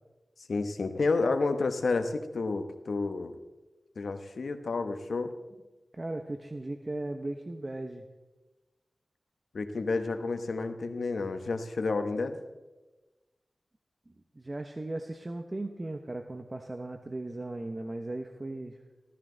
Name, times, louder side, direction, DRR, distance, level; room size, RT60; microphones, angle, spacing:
voice 1, 0.5-3.3 4.0-5.3 9.5-12.4, left 3 dB, 80° left, 7 dB, 1.1 m, -30 dB
voice 2, 5.9-8.1 14.3-18.8, right 2 dB, 35° right, 5 dB, 0.9 m, -37 dB
15.5 x 14.0 x 3.9 m, 1.1 s
wide cardioid pair, 65°, 0 cm